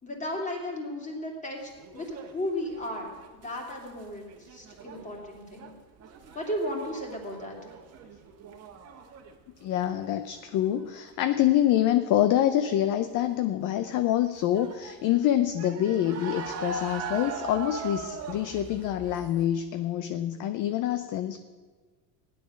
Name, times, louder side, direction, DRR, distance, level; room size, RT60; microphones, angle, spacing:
voice 1, 0.0-5.7 6.3-7.6, left 1 dB, 15° left, 1 dB, 2.9 m, -35 dB
sound 1, 1.6-4.0 4.3-9.4 9.6-10.1 10.5-11.0 12.8-13.1 13.5-13.6 14.6-19.5, right 4 dB, 30° right, 1.6 m, -40 dB
voice 2, 9.6-21.4, left 12 dB, 40° left, 10 dB, 0.6 m, -26 dB
15.5 x 10.5 x 6.3 m, 1.5 s
cardioid pair, 150°, 49 cm